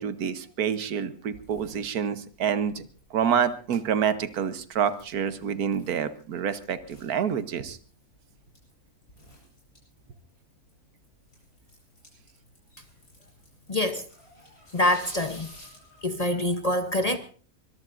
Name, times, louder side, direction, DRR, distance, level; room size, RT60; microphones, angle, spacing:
voice 1, 0.0-2.9 3.1-7.8, right 7 dB, 85° right, 1.5 m, -27 dB
sound 1, 1.3-16.6, left 1 dB, 75° left, 8.4 m, -54 dB
voice 2, 13.7-14.0 14.7-15.5 16.0-17.2, left 1 dB, 35° left, 0.6 m, -25 dB
23.5 x 22.0 x 2.5 m
omnidirectional pair, 1.5 m